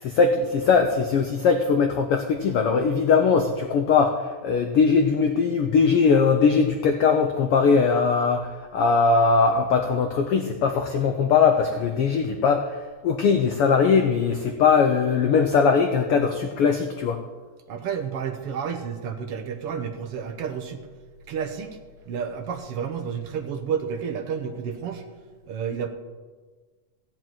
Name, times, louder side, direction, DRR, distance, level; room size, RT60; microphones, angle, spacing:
voice 1, 0.0-12.8 13.0-17.2, left 5 dB, 90° left, 5 dB, 1.2 m, -20 dB
voice 2, 17.7-20.8 21.3-21.8 22.1-25.0 25.4-25.9, right 7 dB, 65° right, 6 dB, 1.5 m, -30 dB
15.0 x 6.0 x 9.2 m, 1.4 s
omnidirectional pair, 3.6 m